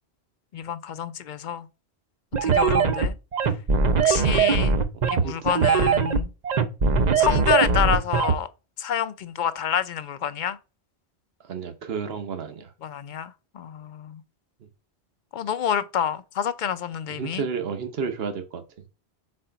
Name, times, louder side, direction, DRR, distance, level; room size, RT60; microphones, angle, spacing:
voice 1, 0.5-1.7 2.4-3.1 4.0-4.8 5.0-6.3 7.2-8.5 8.8-10.6 12.8-14.2 15.3-17.4, left 9 dB, 55° left, 0.6 m, -28 dB
sound 1, 2.3-8.3, right 5 dB, 45° right, 0.7 m, -21 dB
voice 2, 4.9-5.7 11.4-12.7 17.2-18.6, right 6 dB, 65° right, 1.2 m, -32 dB
4.9 x 4.3 x 5.6 m
omnidirectional pair, 1.1 m